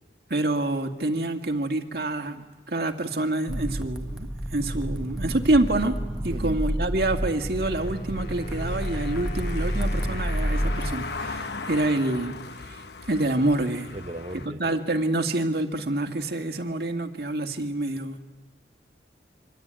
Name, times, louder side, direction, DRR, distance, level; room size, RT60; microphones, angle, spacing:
voice 1, 0.3-5.9 6.2-12.3 12.6-13.9 14.3-18.2, right 2 dB, 60° right, 5 dB, 2.0 m, -27 dB
sound 1, 3.5-10.9, equal, 5° right, 1.0 m, -29 dB
voice 2, 6.3-6.6 13.9-14.6, right 1 dB, 35° right, 3 dB, 1.0 m, -36 dB
Wind instrument woodwind instrument, 7.6-13.2, left 2 dB, 50° left, 2.0 m, -42 dB
Car passing by / Engine, 7.7-14.5, left 4 dB, 75° left, 1.0 m, -39 dB
26.5 x 25.0 x 9.0 m, 1.2 s
head